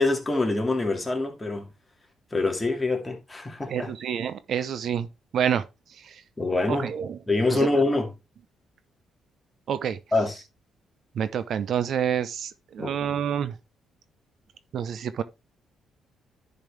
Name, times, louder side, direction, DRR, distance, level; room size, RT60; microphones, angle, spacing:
voice 1, 0.0-1.7 2.3-3.9 6.4-6.9 7.3-8.1 10.1-10.4 12.8-13.1, left 2 dB, 15° left, 2.3 m, -25 dB
voice 2, 3.7-5.1 5.3-5.6 6.0-6.2 6.7-7.2 7.5-7.7 9.7-10.0 11.2-13.5 14.7-15.2, right 8 dB, 65° right, 0.6 m, -28 dB
10.5 x 5.2 x 3.3 m
cardioid pair, 90°, 0 cm